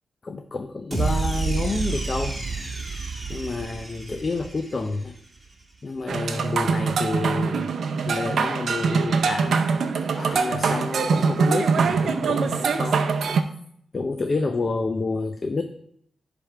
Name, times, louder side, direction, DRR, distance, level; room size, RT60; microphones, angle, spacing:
voice 1, 0.2-2.4 3.3-5.2 5.8-7.7 8.1-9.7 10.1-13.0 13.9-15.6, left 3 dB, 40° left, 6 dB, 0.5 m, -29 dB
sound 1, 0.9-5.2, right 4 dB, 20° right, 2.0 m, -29 dB
sound 2, 6.1-13.4, right 5 dB, 70° right, 0.5 m, -23 dB
10.5 x 3.5 x 4.4 m, 0.70 s
cardioid pair, 90°, 0 cm